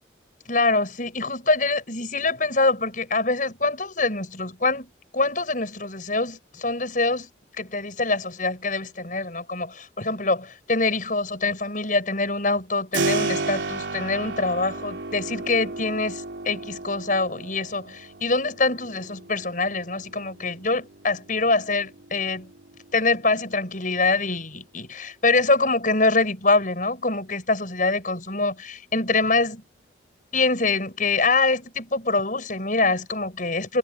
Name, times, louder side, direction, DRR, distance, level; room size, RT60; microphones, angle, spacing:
voice 1, 0.5-7.3 7.6-22.5 22.9-29.6 30.3-33.8, left 3 dB, 45° left, 6.9 m, -24 dB
Keyboard (musical), 12.9-23.6, right 3 dB, 85° right, 3.6 m, -34 dB
head